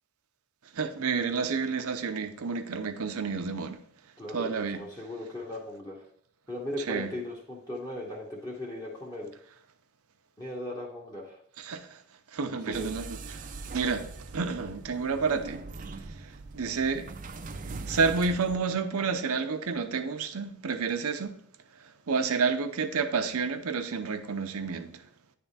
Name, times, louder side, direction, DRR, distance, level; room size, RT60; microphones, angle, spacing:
voice 1, 0.7-3.8 4.3-4.8 6.9-7.1 11.6-12.0 12.3-13.5 13.7-14.1 14.3-15.6 16.2-17.1 17.9-21.3 22.1-25.0, right 5 dB, 80° right, 0.7 m, -30 dB
voice 2, 4.2-6.0 6.5-9.3 10.4-11.4 12.7-13.0, left 1 dB, 20° left, 1.0 m, -38 dB
sound 1, 12.7-18.6, right 3 dB, 35° right, 0.4 m, -41 dB
9.7 x 3.4 x 4.1 m
head